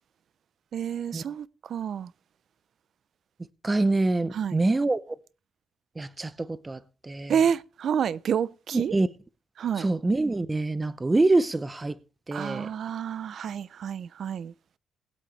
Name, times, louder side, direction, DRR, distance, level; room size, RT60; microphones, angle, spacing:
voice 1, 0.7-2.1 4.3-4.6 7.3-8.9 9.6-9.9 12.3-14.5, right 8 dB, 60° right, 0.6 m, -29 dB
voice 2, 3.6-5.2 6.0-7.4 8.7-9.1 9.8-12.0 12.3-12.7, right 2 dB, 20° right, 0.8 m, -25 dB
20.0 x 8.5 x 3.4 m
cardioid pair, 90°, 0 cm